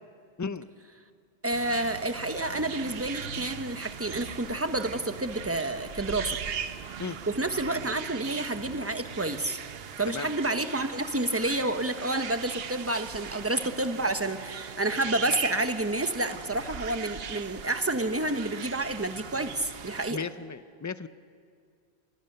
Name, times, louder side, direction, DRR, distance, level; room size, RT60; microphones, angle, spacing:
voice 1, 1.4-6.4 7.4-9.6 10.0-20.2, right 2 dB, 15° right, 8 dB, 1.0 m, -29 dB
sound 1, 1.5-20.1, right 7 dB, 65° right, 1.0 m, -39 dB
voice 2, 20.1-21.1, left 5 dB, 25° left, 13 dB, 0.4 m, -35 dB
27.5 x 21.0 x 6.7 m, 2.3 s
omnidirectional pair, 1.1 m